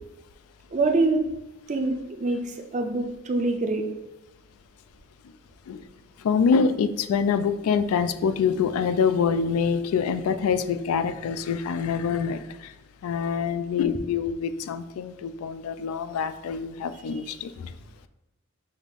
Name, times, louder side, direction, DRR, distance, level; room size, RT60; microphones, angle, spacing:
voice 1, 0.7-1.2 1.7-3.8, right 2 dB, 35° right, 4 dB, 0.4 m, -25 dB
voice 2, 6.2-12.7 13.0-17.7, left 6 dB, 75° left, 12 dB, 0.3 m, -25 dB
5.5 x 2.4 x 3.4 m, 0.94 s
head